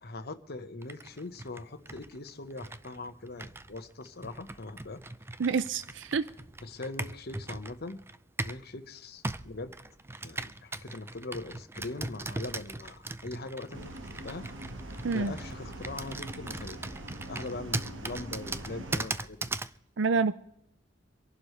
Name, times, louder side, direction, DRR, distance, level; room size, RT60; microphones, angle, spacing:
voice 1, 0.0-5.0 6.6-8.0 8.4-9.7 10.2-13.9 14.2-14.4 15.1-16.8 17.3-19.4, left 2 dB, 55° left, 8 dB, 1.2 m, -41 dB
Computer keyboard, 0.8-8.7 9.2-19.8, right 2 dB, 15° right, 0.4 m, -39 dB
voice 2, 5.4-6.2 15.0-15.3 20.0-20.3, right 4 dB, 70° right, 14 dB, 0.5 m, -27 dB
sound 1, 13.7-19.0, right 1 dB, 90° right, 1.6 m, -43 dB
25.0 x 11.5 x 3.3 m, 0.78 s
head